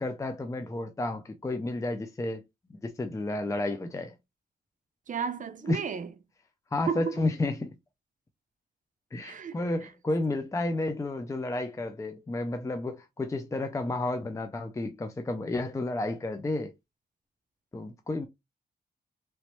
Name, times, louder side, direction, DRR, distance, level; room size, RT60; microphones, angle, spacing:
voice 1, 0.0-2.4 2.7-4.2 5.7-5.8 6.7-7.7 9.1-16.7 17.7-18.3, left 2 dB, 15° left, 0.4 m, -31 dB
voice 2, 5.1-6.1 6.9-7.2 9.2-9.9, right 6 dB, 45° right, 0.5 m, -33 dB
3.0 x 3.0 x 3.0 m
cardioid pair, 95°, 18 cm